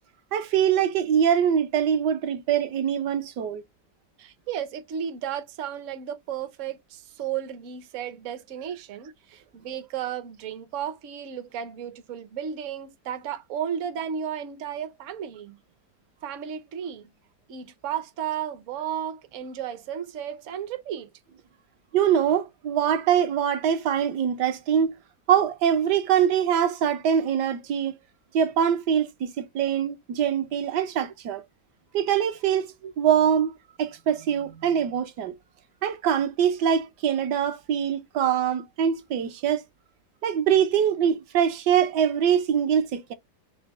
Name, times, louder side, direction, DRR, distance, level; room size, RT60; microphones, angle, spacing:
voice 1, 0.3-3.6 21.9-25.0 25.3-28.0 28.3-31.4 31.9-32.7 33.0-35.3 35.8-39.6 40.2-43.1, right 8 dB, 75° right, 1.3 m, -23 dB
voice 2, 4.2-15.6 16.2-17.1 17.5-21.1 32.8-32.9, right 9 dB, 55° right, 0.9 m, -34 dB
5.0 x 2.1 x 4.6 m
omnidirectional pair, 1.9 m